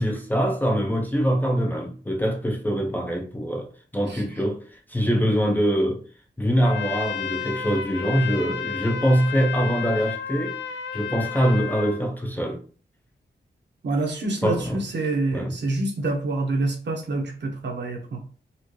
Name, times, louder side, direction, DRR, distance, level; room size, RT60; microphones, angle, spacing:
voice 1, 0.0-4.6 4.9-6.0 6.4-10.6 10.9-12.6 14.4-14.8 15.3-15.6, equal, 10° left, 0.5 m, -23 dB
Trumpet, 6.6-12.0, left 7 dB, 75° left, 0.4 m, -32 dB
voice 2, 13.8-18.2, right 2 dB, 65° right, 1.0 m, -27 dB
4.2 x 2.5 x 3.1 m
wide cardioid pair, 145°, 19 cm